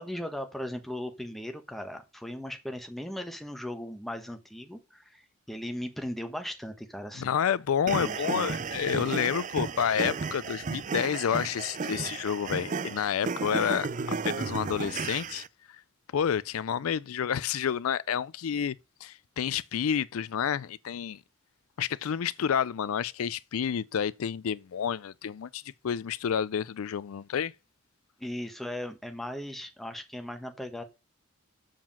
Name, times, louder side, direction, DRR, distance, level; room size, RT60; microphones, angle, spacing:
voice 1, 0.0-7.3 8.0-8.5 28.2-30.8, left 1 dB, ahead, 1.2 m, -38 dB
voice 2, 7.2-15.8 16.1-18.8 19.0-21.2 21.8-27.5, left 8 dB, 75° left, 0.4 m, -29 dB
sound 1, 7.9-15.5, right 4 dB, 35° right, 0.4 m, -33 dB
7.5 x 4.8 x 7.2 m
head